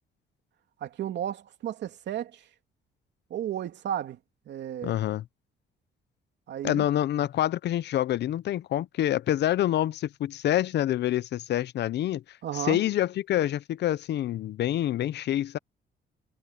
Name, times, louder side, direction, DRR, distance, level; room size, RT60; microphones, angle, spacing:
voice 1, 0.8-2.5 3.3-4.2 4.4-5.0 6.5-6.8 12.4-12.8, right 10 dB, 65° right, 3.1 m, -33 dB
voice 2, 4.8-5.2 6.6-15.6, left 12 dB, 65° left, 0.7 m, -27 dB
cardioid pair, 115°, 19 cm